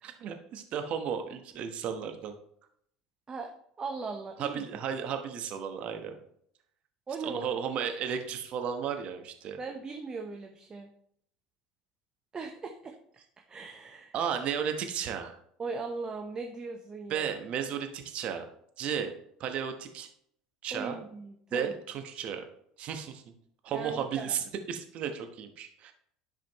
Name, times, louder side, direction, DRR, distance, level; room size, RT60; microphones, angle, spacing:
voice 1, 0.0-2.3 4.4-6.2 7.2-9.6 14.1-15.4 17.1-18.5 18.8-19.1 19.4-20.1 20.6-21.0 21.5-22.4 22.8-23.2 23.6-25.9, right 7 dB, 50° right, 6 dB, 1.1 m, -34 dB
voice 2, 3.8-4.6 7.1-7.6 9.6-10.9 12.3-13.2 13.5-14.1 15.6-17.3 20.7-21.7 23.7-24.3, right 4 dB, 30° right, 3 dB, 0.9 m, -39 dB
10.5 x 5.0 x 3.0 m, 0.69 s
hypercardioid pair, 80°, 3 cm